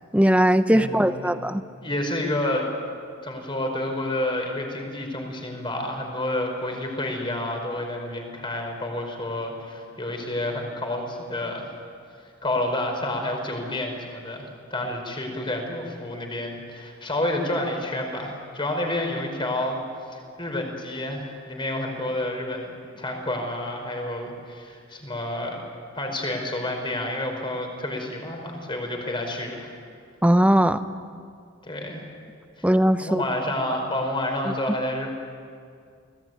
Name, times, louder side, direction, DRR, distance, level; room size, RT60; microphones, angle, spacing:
voice 1, 0.1-1.6 30.2-30.8 32.6-33.2, equal, 5° right, 10 dB, 0.9 m, -19 dB
voice 2, 0.7-1.3 1.8-2.7 3.2-11.7 12.2-19.8 20.1-25.6 25.9-29.7 31.6-32.0 32.6-32.7 33.0-35.1, left 1 dB, 25° left, 3 dB, 5.2 m, -29 dB
30.0 x 20.0 x 9.5 m, 2.2 s
head